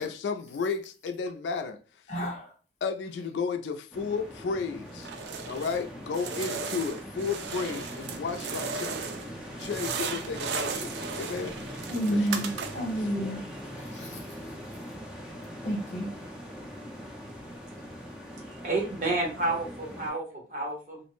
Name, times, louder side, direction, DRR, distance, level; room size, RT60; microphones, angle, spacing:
voice 1, 0.0-1.8 2.2-2.3 2.8-5.1 5.5-8.9 9.6-11.6 12.0-12.4, left 5 dB, 85° left, 0.3 m, -33 dB
voice 2, 2.1-2.5 11.9-13.4 13.7-14.2 15.6-16.1, equal, 40° left, 0.9 m, -30 dB
sound 1, 3.9-20.1, equal, 5° right, 0.4 m, -42 dB
sound 2, 5.0-5.8 6.1-9.3 9.6-13.0, right 5 dB, 80° right, 0.3 m, -36 dB
voice 3, 18.6-21.0, right 2 dB, 45° right, 0.8 m, -30 dB
2.5 x 2.0 x 2.9 m
head